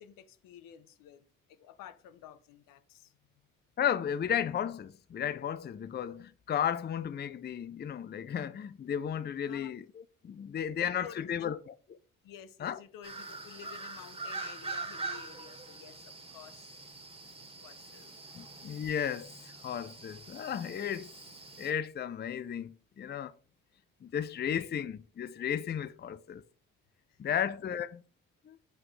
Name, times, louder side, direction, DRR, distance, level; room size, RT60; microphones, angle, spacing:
voice 1, 0.0-3.2 9.5-9.7 10.4-11.5 12.2-16.7 17.6-18.1 27.1-27.5, left 9 dB, 80° left, 0.9 m, -52 dB
voice 2, 3.8-9.8 10.2-11.7 12.6-12.8 18.3-21.1 21.6-23.3 24.0-26.4 27.2-28.0 28.5-28.6, left 9 dB, 30° left, 0.5 m, -34 dB
sound 1, 13.0-21.7, right 3 dB, 15° right, 2.0 m, -44 dB
7.8 x 5.8 x 3.2 m
supercardioid pair, 65°, 33 cm